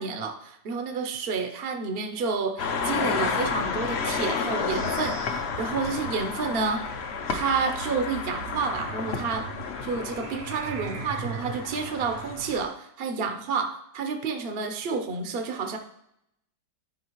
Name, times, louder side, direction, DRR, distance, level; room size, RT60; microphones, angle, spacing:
voice 1, 0.0-7.0 7.3-9.5 9.8-15.8, right 5 dB, 50° right, 5 dB, 0.7 m, -30 dB
sound 1, 2.6-12.6, left 5 dB, 60° left, 0.6 m, -31 dB
sound 2, 4.7-12.5, right 7 dB, 75° right, 1.2 m, -41 dB
11.5 x 5.0 x 3.0 m, 0.78 s
omnidirectional pair, 1.9 m